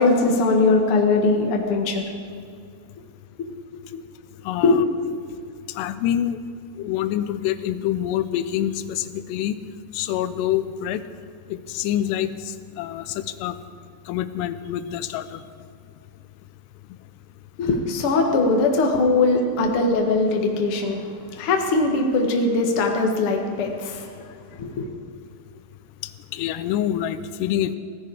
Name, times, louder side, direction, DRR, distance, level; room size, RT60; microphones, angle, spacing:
voice 1, 0.0-2.0 4.6-4.8 17.6-21.0 21.4-24.1 24.6-24.9, left 3 dB, 50° left, 2 dB, 1.8 m, -20 dB
voice 2, 4.4-4.8 5.7-6.4 6.8-9.6 9.9-11.0 11.5-13.6 14.1-15.4 26.3-27.8, left 11 dB, 90° left, 12 dB, 2.8 m, -26 dB
17.5 x 15.0 x 4.8 m, 2.3 s
omnidirectional pair, 4.7 m